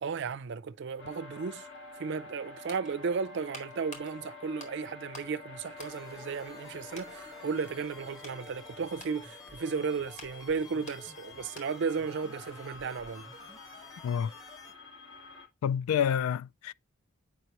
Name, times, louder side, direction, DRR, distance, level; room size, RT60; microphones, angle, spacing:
voice 1, 0.0-1.7 2.0-13.3, right 5 dB, 55° right, 0.4 m, -34 dB
sound 1, 1.0-15.5, left 3 dB, 60° left, 1.7 m, -49 dB
sound 2, 2.5-5.4 5.7-6.6 6.9-7.2 7.7-12.0 12.3-12.4, left 2 dB, 35° left, 1.9 m, -52 dB
sound 3, 5.8-14.7, left 1 dB, 15° left, 1.4 m, -52 dB
voice 2, 15.6-16.7, left 8 dB, 85° left, 0.3 m, -28 dB
8.0 x 5.2 x 2.9 m
head